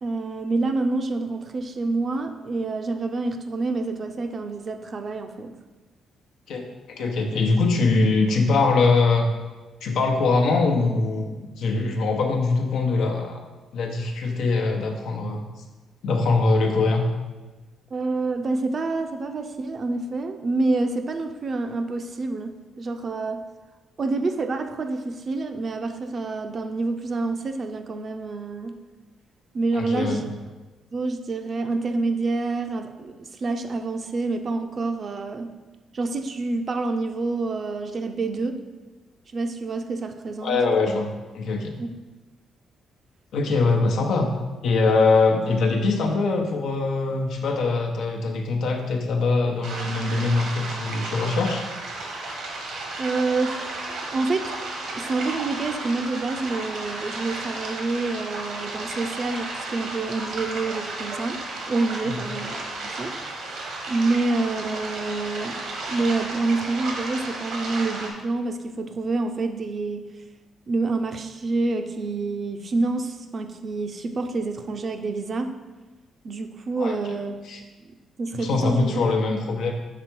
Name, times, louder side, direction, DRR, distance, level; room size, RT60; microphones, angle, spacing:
voice 1, 0.0-5.5 17.9-23.4 24.0-28.7 29.5-30.3 30.9-35.5 35.9-38.6 39.3-40.6 41.8-41.9 53.0-53.7 54.1-54.5 54.9-61.4 61.7-62.6 62.8-63.1 63.9-65.6 65.9-70.0 70.7-75.5 76.2-77.4 78.2-79.0, right 3 dB, 45° right, 7 dB, 0.5 m, -27 dB
voice 2, 6.5-9.3 9.8-13.4 13.7-15.4 16.0-17.0 29.7-30.2 40.4-41.8 43.3-44.3 44.6-51.6 62.0-62.2 76.8-77.0 77.4-77.6 78.3-79.7, left 3 dB, 75° left, 3 dB, 0.8 m, -22 dB
sound 1, 49.6-68.1, right 2 dB, 80° right, 1.2 m, -33 dB
6.0 x 3.4 x 4.5 m, 1.2 s
cardioid pair, 90°, 0 cm